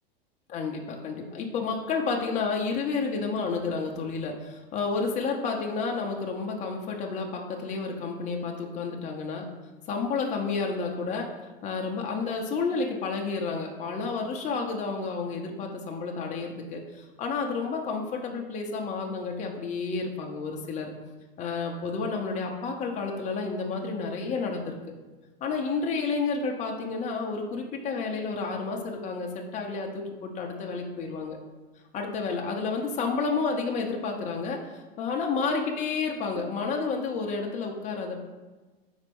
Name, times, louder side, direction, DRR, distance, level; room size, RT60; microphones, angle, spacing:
voice 1, 0.5-9.5 9.9-11.3 11.6-20.9 21.4-24.8 25.4-31.4 31.9-38.2, left 4 dB, 25° left, 0 dB, 0.8 m, -30 dB
4.3 x 4.1 x 5.3 m, 1.2 s
hypercardioid pair, 120°, 30 cm